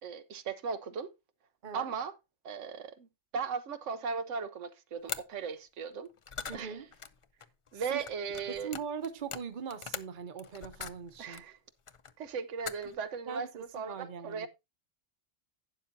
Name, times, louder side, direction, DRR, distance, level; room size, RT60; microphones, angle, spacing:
voice 1, 0.0-1.1 1.7-2.1 2.4-3.1 3.3-6.1 6.5-6.7 7.7-8.7 11.2-11.6 12.2-14.5, right 5 dB, 85° right, 1.1 m, -37 dB
sound 1, 5.1-5.2 6.1-11.4 11.9-12.3 12.6-13.0, left 6 dB, 45° left, 0.4 m, -42 dB
voice 2, 6.5-6.9 7.7-8.0 8.5-11.4 12.8-12.9 13.3-14.5, right 6 dB, 45° right, 1.0 m, -41 dB
11.5 x 8.8 x 2.7 m
omnidirectional pair, 1.2 m